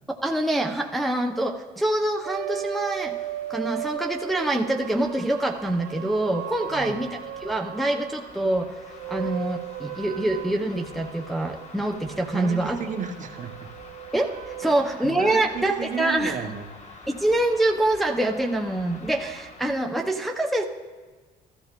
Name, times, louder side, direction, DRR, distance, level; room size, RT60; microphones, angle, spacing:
voice 1, 0.1-3.2 3.5-8.7 9.1-12.8 14.1-14.3 14.6-16.5 17.1-20.6, right 1 dB, ahead, 2 dB, 0.6 m, -25 dB
sound 1, 2.2-8.3 8.9-15.7, right 12 dB, 70° right, 0.7 m, -37 dB
sound 2, 2.9-19.9, left 3 dB, 40° left, 1.3 m, -48 dB
voice 2, 6.6-7.0 12.3-13.5 14.6-17.0, right 6 dB, 45° right, 4 dB, 1.0 m, -34 dB
14.5 x 13.0 x 2.4 m, 1.4 s
cardioid pair, 110°, 17 cm